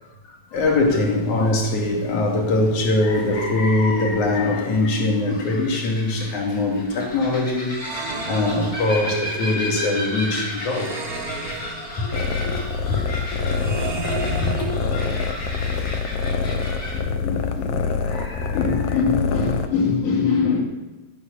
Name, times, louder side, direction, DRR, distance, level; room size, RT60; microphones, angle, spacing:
voice 1, 0.3-11.0 12.0-13.8 14.0-14.7 15.7-15.9 16.9-20.6, left 2 dB, 85° left, 0 dB, 3.9 m, -23 dB
sound 1, 0.5-17.0, left 1 dB, 30° left, 4.3 m, -35 dB
sound 2, 7.7-9.4 10.7-12.3 13.5-15.4, right 3 dB, 50° right, 1.1 m, -33 dB
sound 3, 12.1-19.7, left 5 dB, 65° left, 2.0 m, -26 dB
17.5 x 9.8 x 6.9 m, 1.2 s
omnidirectional pair, 3.3 m